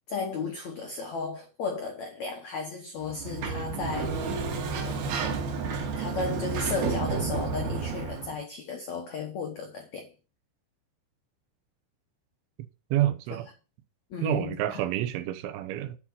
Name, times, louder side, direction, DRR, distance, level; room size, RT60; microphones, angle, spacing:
voice 1, 0.1-4.4 4.8-5.2 6.0-10.1 14.1-14.8, left 4 dB, 85° left, 1.5 m, -35 dB
Sliding door, 3.0-8.4, right 4 dB, 60° right, 3.5 m, -31 dB
voice 2, 12.9-13.5 14.2-16.0, right 13 dB, 90° right, 3.3 m, -28 dB
9.9 x 4.7 x 7.3 m
omnidirectional pair, 5.2 m